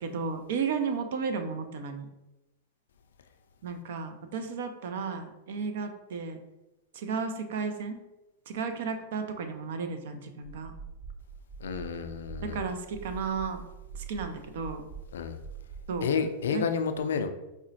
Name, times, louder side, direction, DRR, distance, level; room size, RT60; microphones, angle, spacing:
voice 1, 0.0-2.1 3.6-6.4 6.9-8.0 8.5-10.7 12.4-13.6 13.9-14.8 15.9-16.2 16.5-16.6, right 5 dB, 65° right, 7 dB, 0.4 m, -33 dB
sound 1, 10.4-16.0, right 6 dB, 50° right, 0.9 m, -44 dB
voice 2, 11.6-12.7 15.1-15.4 16.0-17.3, left 6 dB, 75° left, 8 dB, 0.3 m, -30 dB
4.8 x 2.1 x 2.7 m, 1.0 s
hypercardioid pair, 105°, 0 cm